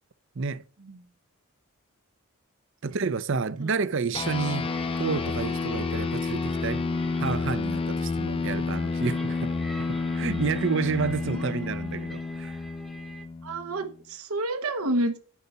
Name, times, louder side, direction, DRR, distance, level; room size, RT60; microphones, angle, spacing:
voice 1, 2.8-4.7 5.0-6.8 7.2-12.6, right 5 dB, 55° right, 0.6 m, -30 dB
sound 1, 4.1-13.9, left 4 dB, 25° left, 0.3 m, -30 dB
sound 2, 4.6-13.3, equal, ahead, 0.9 m, -44 dB
voice 2, 13.4-15.2, right 1 dB, 80° right, 1.1 m, -29 dB
10.5 x 4.2 x 6.7 m
head